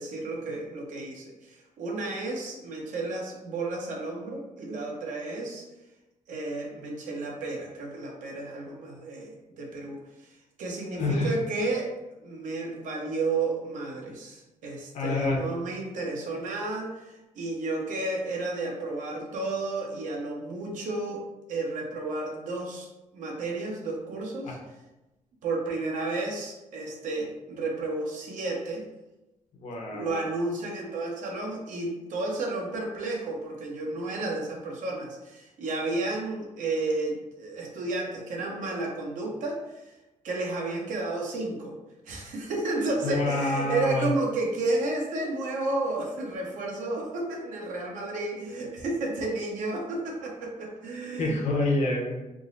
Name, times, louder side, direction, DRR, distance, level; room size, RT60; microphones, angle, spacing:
voice 1, 0.0-5.6 6.3-10.0 10.6-11.9 12.2-21.2 21.5-22.9 23.1-24.6 25.4-28.8 29.9-39.8 40.2-41.7 42.1-51.4, right 2 dB, 80° right, -1 dB, 0.9 m, -32 dB
voice 2, 10.9-11.3 14.9-15.4 24.4-24.6 29.6-30.2 43.0-44.1 51.2-52.2, left 2 dB, 60° left, 0 dB, 0.8 m, -27 dB
3.6 x 2.0 x 3.8 m, 1.0 s
cardioid pair, 130°, 13 cm